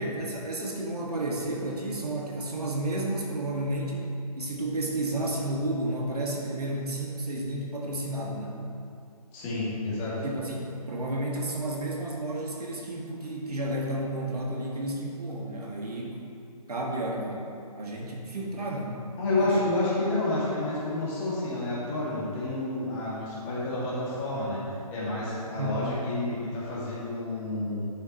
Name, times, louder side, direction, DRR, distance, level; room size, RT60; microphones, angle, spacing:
voice 1, 0.0-4.1 4.4-8.6 10.2-16.2 16.7-19.0 19.4-19.6 25.6-25.8, right 1 dB, 75° right, -2 dB, 1.8 m, -32 dB
voice 2, 9.3-10.2 19.2-24.6 24.9-27.8, left 2 dB, 20° left, -8 dB, 2.0 m, -29 dB
9.9 x 7.3 x 3.0 m, 2.4 s
hypercardioid pair, 155°, 20 cm